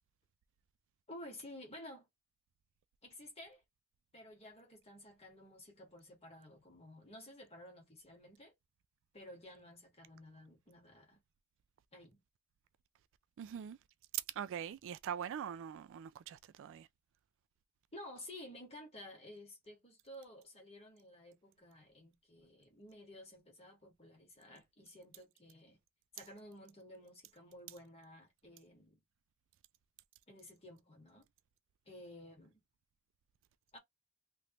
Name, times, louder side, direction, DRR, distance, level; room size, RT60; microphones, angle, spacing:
voice 1, 1.1-2.1 3.0-3.6 4.1-8.5 9.1-11.2 11.9-12.2 17.9-25.8 26.1-29.0 30.3-31.2 31.9-32.6 33.7-33.8, left 1 dB, 30° left, 1.6 m, -53 dB
voice 2, 13.4-13.8 14.3-16.9, right 8 dB, 60° right, 0.3 m, -43 dB
3.2 x 2.6 x 2.9 m
head